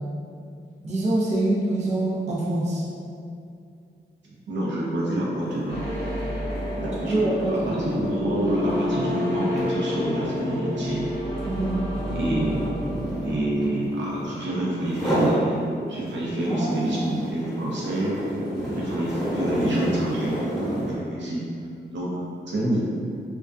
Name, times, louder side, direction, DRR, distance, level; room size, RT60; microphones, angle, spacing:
voice 1, 0.8-2.8 7.0-7.8 11.4-11.8 16.5-17.5, right 1 dB, 40° right, -7 dB, 0.4 m, -25 dB
voice 2, 4.5-5.8 6.8-11.0 12.1-12.7 13.2-15.6 15.9-18.2 18.7-21.4 21.9-22.8, right 1 dB, 85° right, -5 dB, 0.6 m, -27 dB
sound 1, 5.4-5.6 5.9-14.4 14.8-15.4 15.9-21.0, right 1 dB, ahead, 0.8 m, -30 dB
sound 2, 5.7-13.6, left 1 dB, 85° left, 0.5 m, -30 dB
2.3 x 2.2 x 2.4 m, 2.4 s
wide cardioid pair, 165°, 18 cm